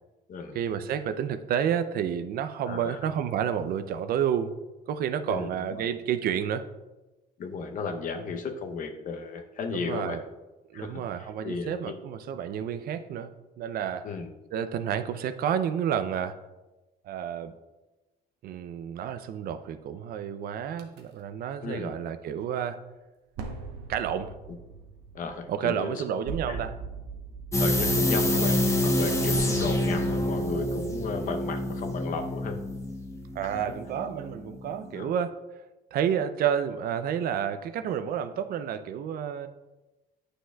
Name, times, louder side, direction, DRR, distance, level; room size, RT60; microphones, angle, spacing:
voice 1, 0.5-4.5 4.9-6.6 9.7-10.2 10.7-14.1 14.5-16.4 17.0-17.5 18.4-22.8 23.9-24.4 25.5-26.7 33.3-35.4 35.9-39.5, right 8 dB, 60° right, 10 dB, 0.5 m, -30 dB
voice 2, 2.7-3.0 5.3-5.8 7.4-10.2 10.7-12.0 14.0-14.3 21.6-22.0 24.5-24.6 25.1-26.0 26.5-26.6 27.6-32.6 33.4-33.6 34.9-35.1, left 5 dB, 50° left, 5 dB, 0.8 m, -34 dB
sound 1, 20.8-21.0 23.3-31.0, right 4 dB, 85° right, 1.0 m, -42 dB
sound 2, 27.5-34.3 34.6-34.7, left 1 dB, 15° left, 0.9 m, -27 dB
9.4 x 6.3 x 2.3 m, 1.1 s
cardioid pair, 110°, 17 cm